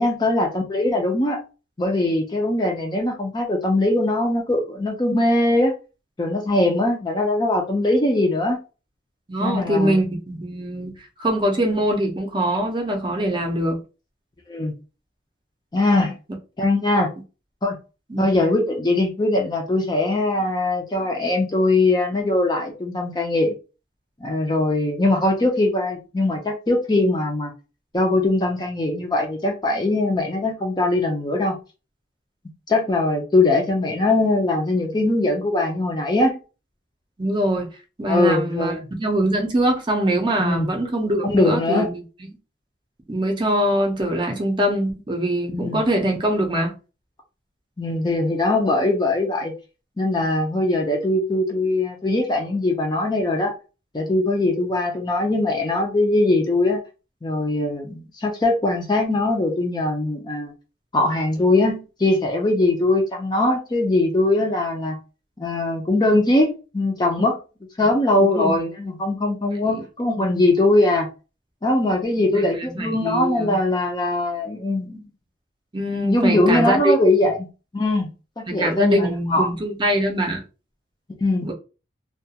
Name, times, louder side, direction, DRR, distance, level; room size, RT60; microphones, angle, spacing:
voice 1, 0.0-1.4 1.8-5.7 6.2-8.6 9.4-10.0 14.5-14.7 15.7-16.2 16.6-17.1 17.6-17.8 18.2-23.5 24.2-27.5 27.9-31.6 32.7-36.4 38.1-38.9 40.4-40.7 41.2-41.9 45.5-45.8 47.8-49.5 50.0-53.5 53.9-56.8 57.2-60.5 60.9-65.0 65.4-67.4 67.8-71.1 71.6-75.1 76.0-77.4 77.7-78.1 78.4-79.5 81.2-81.5, left 2 dB, 20° left, 0.4 m, -21 dB
voice 2, 9.3-10.9 11.2-13.8 18.1-18.2 37.2-37.7 38.0-42.0 43.1-46.7 67.8-67.9 68.2-68.5 69.6-69.8 72.3-73.5 75.7-76.9 78.5-80.4 81.4-81.5, right 1 dB, 25° right, 0.5 m, -23 dB
2.3 x 2.2 x 2.7 m
head